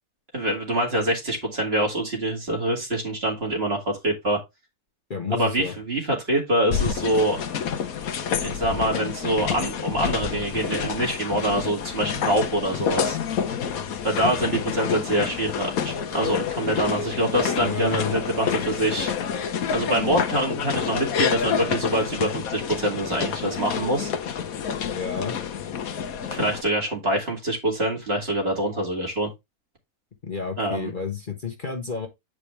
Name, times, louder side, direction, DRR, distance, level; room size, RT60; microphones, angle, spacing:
voice 1, 0.3-4.4 5.3-7.4 8.4-13.2 14.0-19.1 19.7-24.1 26.3-29.3 30.6-30.9, right 1 dB, 40° right, 2.5 m, -25 dB
voice 2, 5.1-5.7 17.6-18.2 18.4-18.6 24.8-25.4 30.2-32.1, left 6 dB, 35° left, 1.1 m, -31 dB
sound 1, 6.7-26.6, left 7 dB, 70° left, 1.3 m, -28 dB
8.4 x 5.0 x 3.2 m
omnidirectional pair, 1.6 m